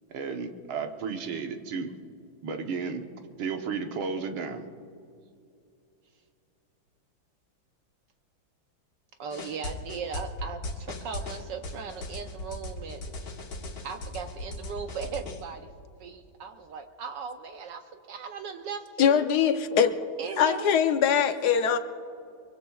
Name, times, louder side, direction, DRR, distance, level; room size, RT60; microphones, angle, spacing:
voice 1, 0.1-1.9 2.4-3.0 3.4-4.7, right 5 dB, 90° right, 5 dB, 1.9 m, -33 dB
voice 2, 9.2-13.1 13.8-15.7 16.0-19.3 20.2-20.7, right 6 dB, 70° right, 6 dB, 1.3 m, -38 dB
sound 1, 9.3-15.4, left 2 dB, 85° left, 2.4 m, -38 dB
voice 3, 19.0-20.0 20.4-21.8, left 8 dB, 65° left, 9 dB, 1.2 m, -22 dB
23.5 x 23.5 x 2.4 m, 2.5 s
omnidirectional pair, 2.2 m